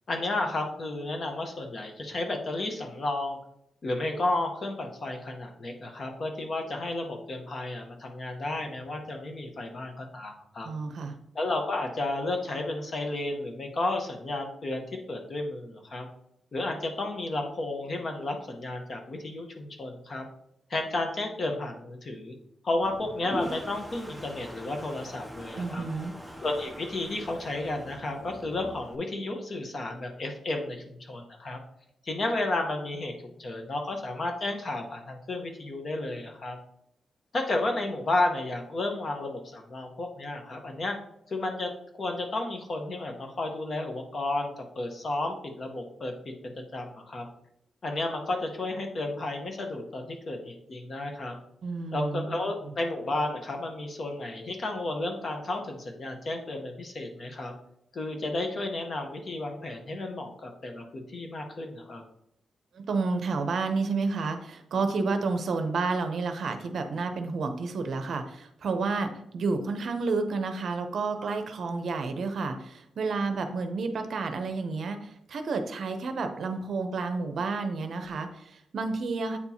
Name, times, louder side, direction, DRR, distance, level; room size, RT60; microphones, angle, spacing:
voice 1, 0.1-3.4 3.8-10.7 11.3-16.1 16.5-20.3 20.7-22.3 22.6-25.8 26.4-31.6 32.0-33.1 33.4-36.6 37.3-41.0 41.3-41.7 42.0-47.3 47.8-51.4 51.9-57.5 57.9-62.0, left 2 dB, 35° left, 3 dB, 0.9 m, -32 dB
voice 2, 10.6-11.2 25.5-26.1 51.6-52.4 62.7-79.4, right 4 dB, 55° right, 7 dB, 0.6 m, -30 dB
Toilet flush, 22.8-28.9, equal, ahead, 0.5 m, -42 dB
8.4 x 4.4 x 2.8 m, 0.75 s
wide cardioid pair, 165°, 0 cm